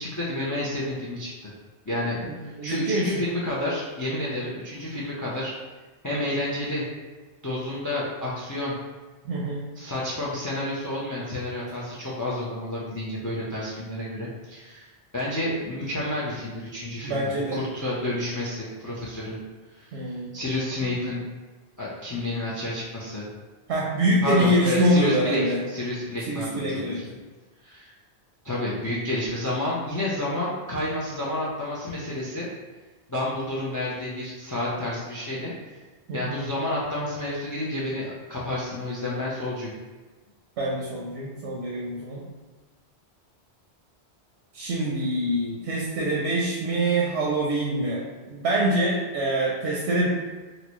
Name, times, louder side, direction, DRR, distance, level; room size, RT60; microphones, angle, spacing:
voice 1, 0.0-1.5 1.9-5.5 6.0-6.8 7.4-8.7 9.8-19.4 19.7-21.2 21.8-23.3 24.2-27.0 27.6-27.9 28.4-32.5 33.1-35.8 36.1-39.7, left 1 dB, 30° left, -6 dB, 0.3 m, -30 dB
voice 2, 2.2-3.1 9.2-9.6 17.0-17.6 19.9-20.3 23.7-25.6 26.3-27.0 36.1-36.3 40.6-42.2 44.5-48.0 48.3-50.1, right 1 dB, 85° right, -4 dB, 0.9 m, -25 dB
4.0 x 2.2 x 3.0 m, 1.3 s
omnidirectional pair, 1.1 m